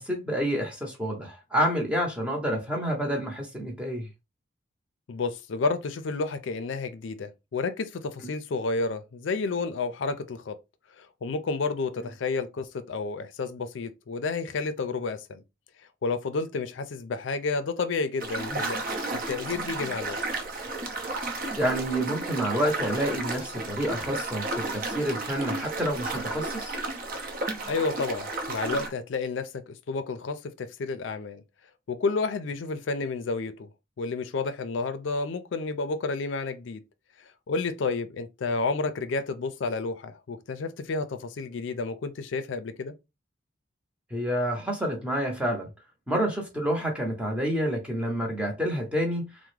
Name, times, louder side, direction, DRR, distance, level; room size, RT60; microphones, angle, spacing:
voice 1, 0.0-4.1 8.2-8.3 18.5-18.6 21.6-26.8 44.1-45.7 46.1-49.3, equal, 5° right, 0.7 m, -28 dB
voice 2, 5.1-10.5 11.0-15.4 16.0-20.2 27.7-31.4 31.9-33.7 34.0-36.8 37.5-42.9, left 4 dB, 75° left, 0.4 m, -31 dB
sound 1, 18.2-28.9, right 2 dB, 45° right, 0.7 m, -33 dB
3.4 x 2.1 x 3.2 m
head